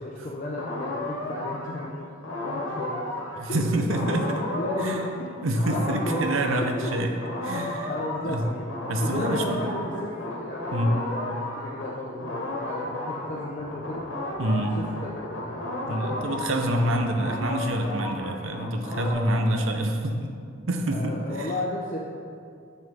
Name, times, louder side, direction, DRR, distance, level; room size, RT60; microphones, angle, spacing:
voice 1, 0.0-2.0 2.4-3.2 3.5-3.6 3.9-4.2 4.5-5.3 5.7-6.4 6.8-6.9 7.9-8.7 9.0-14.1 14.6-17.1 19.0-19.7 20.9-22.0, left 1 dB, 40° left, -4 dB, 0.6 m, -34 dB
sound 1, 0.6-11.9 12.2-19.1, left 2 dB, 85° left, 1.2 m, -33 dB
voice 2, 3.4-4.4 4.8-5.0 5.4-7.1 7.4-7.9 8.2-8.4 8.9-9.6 10.7-11.0 14.4-14.8 15.9-20.3 20.7-21.5, right 1 dB, 80° right, 4 dB, 0.6 m, -26 dB
6.5 x 5.5 x 3.5 m, 2.3 s
head